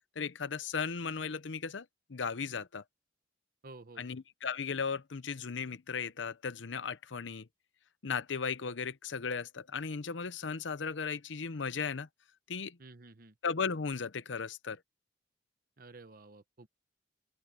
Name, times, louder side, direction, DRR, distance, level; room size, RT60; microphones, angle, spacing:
voice 1, 0.2-2.8 4.0-7.5 8.0-12.1 12.5-12.8 13.4-14.8, left 5 dB, 80° left, 0.7 m, -36 dB
voice 2, 3.6-4.1 12.8-13.3 15.8-16.7, right 3 dB, 50° right, 1.0 m, -52 dB
open air
head